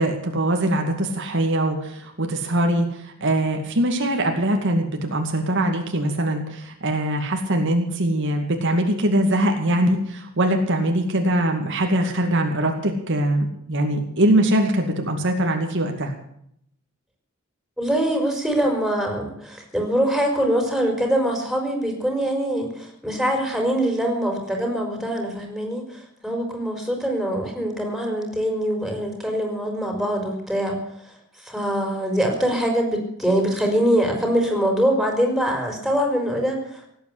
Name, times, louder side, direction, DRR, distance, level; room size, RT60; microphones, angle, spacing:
voice 1, 0.0-16.1, right 1 dB, 60° right, 3 dB, 2.3 m, -22 dB
voice 2, 17.8-30.8 31.4-36.9, equal, ahead, 2 dB, 4.8 m, -23 dB
17.5 x 9.1 x 8.5 m, 0.70 s
head